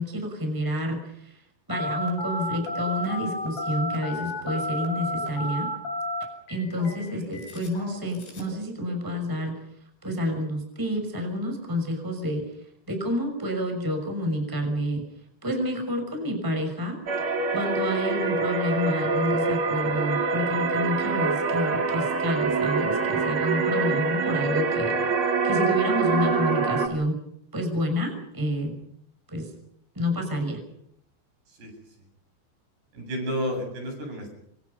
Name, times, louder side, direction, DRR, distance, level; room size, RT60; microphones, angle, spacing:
voice 1, 0.0-1.4 1.7-5.7 6.5-9.6 10.0-12.4 12.9-15.0 15.4-17.0 17.5-25.1 25.4-27.2 27.5-28.8 29.3-29.5 30.0-30.6, left 1 dB, 5° right, 4 dB, 5.6 m, -29 dB
Telephone, 1.7-8.6, left 1 dB, 75° left, 10.0 m, -32 dB
sound 1, 17.1-26.9, right 4 dB, 40° right, 2.1 m, -25 dB
voice 2, 32.9-34.3, equal, 60° right, 3 dB, 10.0 m, -31 dB
27.5 x 26.5 x 5.5 m, 0.70 s
omnidirectional pair, 5.4 m